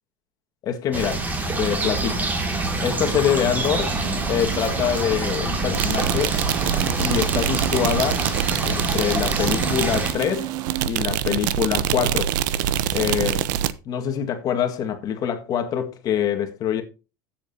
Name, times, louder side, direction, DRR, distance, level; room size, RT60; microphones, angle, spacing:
voice 1, 0.6-1.3 1.6-2.2 2.8-4.0 4.3-6.4 7.0-8.3 8.6-10.5 10.9-12.3 12.9-13.5 13.9-16.8, left 9 dB, 35° left, 1.8 m, -25 dB
sound 1, 0.9-10.1, right 2 dB, 15° right, 2.3 m, -26 dB
sound 2, 3.0-10.9, right 12 dB, 40° right, 0.8 m, -35 dB
sound 3, 5.7-13.7, right 11 dB, 70° right, 0.8 m, -25 dB
15.0 x 7.5 x 2.8 m
supercardioid pair, 140°, 11 cm